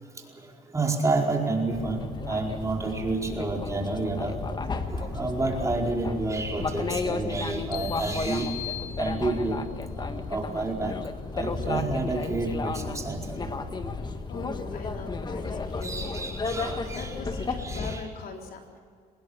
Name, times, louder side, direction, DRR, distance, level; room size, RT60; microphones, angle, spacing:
voice 1, 0.7-4.4 4.9-8.5 9.0-9.6 10.0-10.9 11.3-13.5 15.8-17.1 17.6-18.0, right 3 dB, 20° right, 0 dB, 4.7 m, -29 dB
sound 1, 1.7-18.0, left 4 dB, 25° left, 1.6 m, -33 dB
voice 2, 4.7-5.1 14.0-18.8, left 4 dB, 60° left, 2 dB, 3.8 m, -42 dB
sound 2, 7.7-9.7, left 14 dB, 80° left, 0.8 m, -39 dB
24.5 x 20.0 x 7.3 m, 2.1 s
cardioid pair, 110°, 17 cm